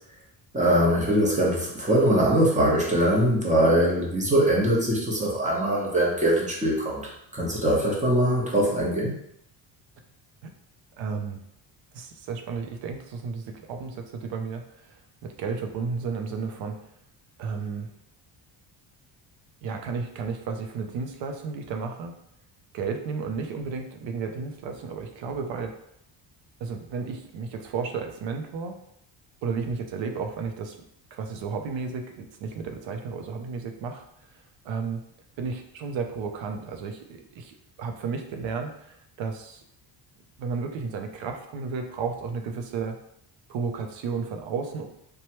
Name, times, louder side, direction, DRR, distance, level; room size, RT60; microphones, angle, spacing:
voice 1, 0.5-9.2, right 1 dB, 15° right, -4 dB, 0.8 m, -22 dB
voice 2, 11.0-11.4 11.9-16.8 17.4-17.9 19.6-22.2 22.7-25.8 26.6-28.8 29.4-30.8 31.1-34.0 34.3-35.0 35.4-39.6 40.4-43.0 43.5-44.9, right 5 dB, 75° right, 4 dB, 0.6 m, -33 dB
3.0 x 2.2 x 2.9 m, 0.75 s
cardioid pair, 120°, 46 cm